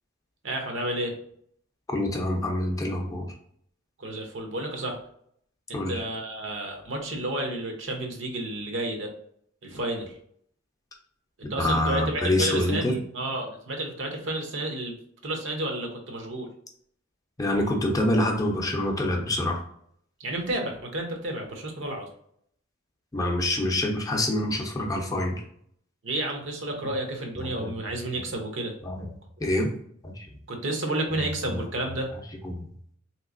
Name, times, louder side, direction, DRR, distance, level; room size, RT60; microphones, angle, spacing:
voice 1, 0.4-1.2 4.0-5.0 5.7-9.1 9.6-10.1 11.4-15.0 15.2-16.5 20.2-22.1 26.0-28.7 30.5-32.1, right 1 dB, 70° right, 2 dB, 0.8 m, -31 dB
voice 2, 1.9-3.3 5.7-6.0 11.6-12.9 17.4-19.6 23.1-25.4 27.5-27.7 28.8-29.1 29.4-29.7 30.0-30.3 31.5-31.6 32.4-32.7, left 1 dB, 20° left, 0 dB, 0.5 m, -26 dB
3.4 x 3.0 x 2.5 m, 0.66 s
head